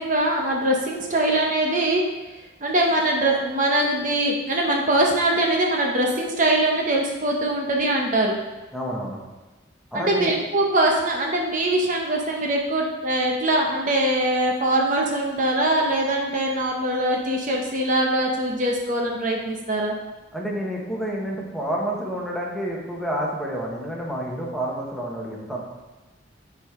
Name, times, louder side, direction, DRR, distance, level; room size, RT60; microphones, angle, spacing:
voice 1, 0.0-2.0 2.6-8.4 9.9-19.9, right 1 dB, 40° right, 0 dB, 0.8 m, -22 dB
voice 2, 8.7-9.2 9.9-10.3 20.3-25.6, equal, ahead, -3 dB, 1.1 m, -29 dB
9.8 x 4.6 x 3.7 m, 1.2 s
head